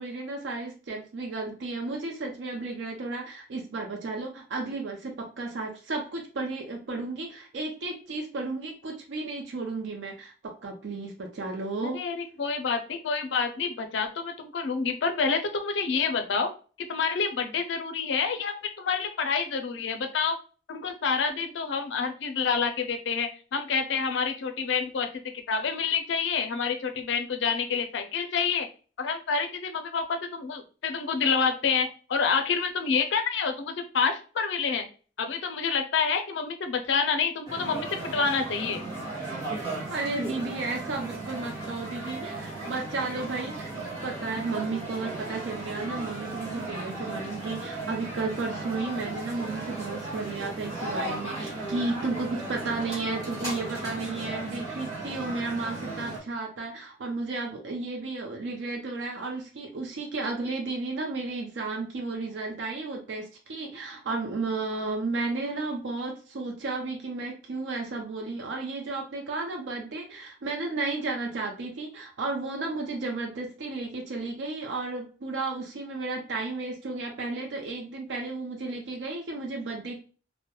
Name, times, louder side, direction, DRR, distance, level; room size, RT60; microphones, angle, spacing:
voice 1, 0.0-12.0 39.9-43.7 44.0-80.0, right 3 dB, 80° right, 1 dB, 0.4 m, -33 dB
voice 2, 11.8-16.5 16.8-20.4 20.7-25.1 25.5-28.7 29.0-34.9 35.2-38.8, left 5 dB, 80° left, 6 dB, 0.4 m, -28 dB
sound 1, 37.5-56.2, right 2 dB, 20° right, 1.0 m, -36 dB
2.2 x 2.1 x 2.8 m, 0.38 s
head